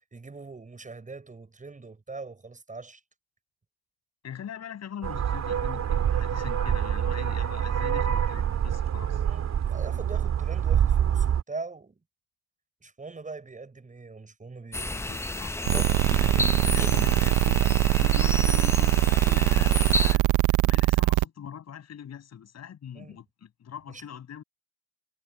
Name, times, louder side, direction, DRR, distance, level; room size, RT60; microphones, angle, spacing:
voice 1, 0.1-3.0 9.2-12.0 12.8-15.1 22.9-23.2 23.9-24.0, right 3 dB, 25° right, 6.4 m, -42 dB
voice 2, 4.2-9.2 14.9-15.5 16.2-20.2 20.7-24.4, left 9 dB, 60° left, 6.5 m, -41 dB
sound 1, 5.0-11.4, right 9 dB, 60° right, 3.3 m, -26 dB
sound 2, 14.7-20.2, left 2 dB, 10° left, 0.7 m, -31 dB
sound 3, 15.7-21.2, right 18 dB, 90° right, 0.5 m, -22 dB
cardioid pair, 90°, 30 cm